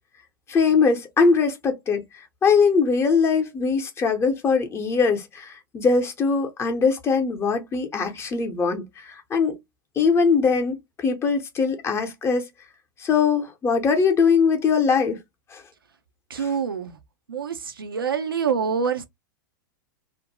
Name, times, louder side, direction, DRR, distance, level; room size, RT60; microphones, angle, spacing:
voice 1, 0.5-2.0 2.4-9.6 10.0-12.5 13.0-15.2 15.5-15.6 16.4-16.5, left 5 dB, 20° left, 0.7 m, -21 dB
voice 2, 16.3-17.0 17.3-19.0, right 6 dB, 85° right, 0.5 m, -26 dB
2.5 x 2.1 x 2.8 m
hypercardioid pair, 100°, 11 cm